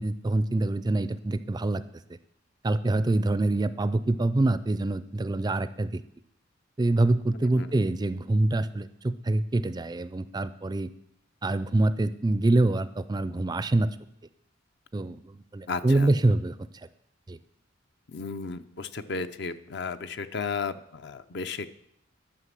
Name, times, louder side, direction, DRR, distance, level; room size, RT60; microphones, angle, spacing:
voice 1, 0.0-1.8 2.6-6.0 6.8-10.9 11.4-13.9 14.9-16.6 17.3-17.4, right 2 dB, 20° right, 14 dB, 0.4 m, -25 dB
voice 2, 15.7-16.1 18.1-21.7, left 4 dB, 60° left, 11 dB, 0.6 m, -34 dB
11.5 x 5.9 x 7.4 m, 0.73 s
head